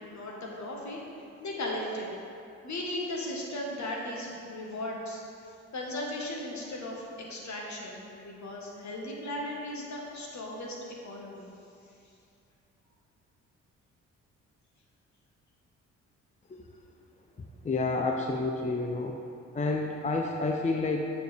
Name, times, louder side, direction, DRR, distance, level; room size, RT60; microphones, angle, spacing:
voice 1, 0.1-1.0 1.4-2.1 2.6-5.2 5.7-10.8 11.0-11.4, left 1 dB, 55° left, -2 dB, 1.5 m, -36 dB
voice 2, 17.6-19.1 19.5-21.0, left 3 dB, 20° left, 2 dB, 0.5 m, -29 dB
7.8 x 5.0 x 3.5 m, 2.5 s
hypercardioid pair, 50°, 35 cm